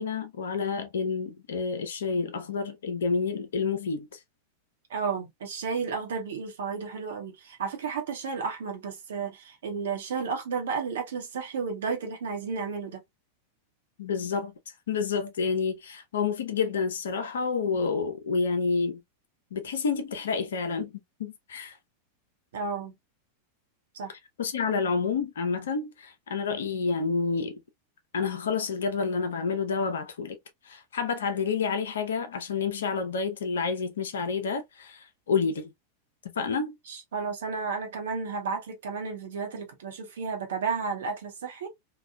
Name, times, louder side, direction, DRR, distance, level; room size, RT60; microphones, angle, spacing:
voice 1, 0.0-4.2 14.0-14.5 14.9-19.0 19.5-21.8 24.4-27.6 28.1-30.4 30.7-35.7 36.4-36.8, left 5 dB, 65° left, 0.6 m, -29 dB
voice 2, 4.9-13.0 22.5-23.0 23.9-24.1 36.9-41.7, right 5 dB, 60° right, 0.9 m, -32 dB
3.0 x 2.2 x 2.3 m
figure-of-eight pair, 90°, 0 cm